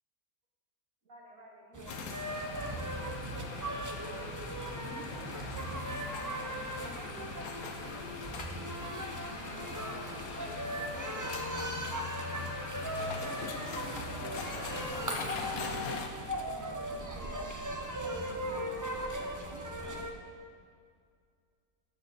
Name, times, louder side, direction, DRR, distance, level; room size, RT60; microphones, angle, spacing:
voice 1, 1.0-3.9 4.8-7.2 7.7-8.2 9.1-9.8 10.4-11.4 13.1-15.9 16.4-18.8, right 1 dB, 60° right, -4 dB, 2.5 m, -51 dB
sound 1, 1.7-20.1, right 1 dB, 20° right, 0.5 m, -38 dB
sound 2, 1.9-16.1, left 5 dB, 70° left, 1.2 m, -42 dB
14.5 x 7.0 x 4.1 m, 2.2 s
omnidirectional pair, 1.6 m